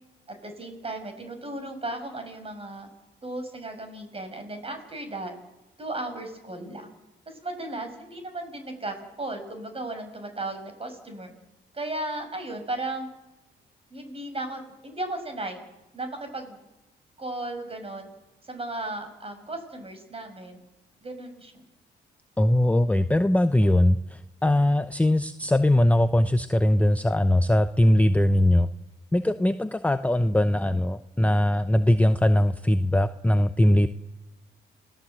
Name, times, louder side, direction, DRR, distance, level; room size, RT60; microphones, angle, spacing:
voice 1, 0.3-2.9 3.2-5.3 5.8-6.9 7.3-11.3 11.7-13.1 13.9-15.6 15.9-16.6 17.2-18.1 18.5-20.6 21.0-21.5, right 2 dB, 30° right, 7 dB, 5.9 m, -35 dB
voice 2, 22.4-28.7 29.1-33.9, left 1 dB, 5° left, 9 dB, 0.8 m, -21 dB
29.0 x 18.5 x 7.8 m, 1.0 s
cardioid pair, 90°, 20 cm